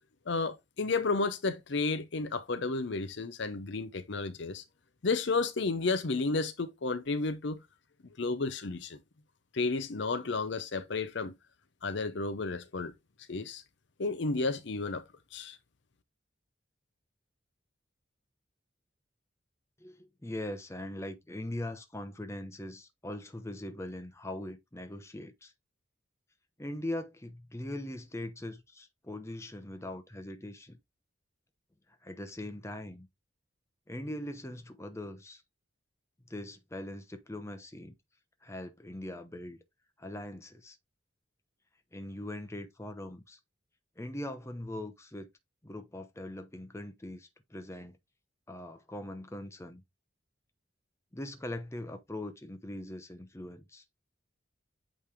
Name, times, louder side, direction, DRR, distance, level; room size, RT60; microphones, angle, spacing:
voice 1, 0.3-4.6 5.0-7.6 8.2-9.0 9.5-11.3 11.8-12.9 13.3-13.6 14.0-15.0 15.3-15.6, left 3 dB, 60° left, 0.7 m, -32 dB
voice 2, 19.8-25.5 26.6-30.8 32.0-33.1 33.9-35.4 36.3-37.9 38.4-39.6 40.0-40.8 41.9-43.4 44.0-45.3 45.6-48.0 48.5-49.8 51.1-53.8, left 1 dB, 15° left, 0.8 m, -41 dB
8.6 x 3.3 x 3.5 m
head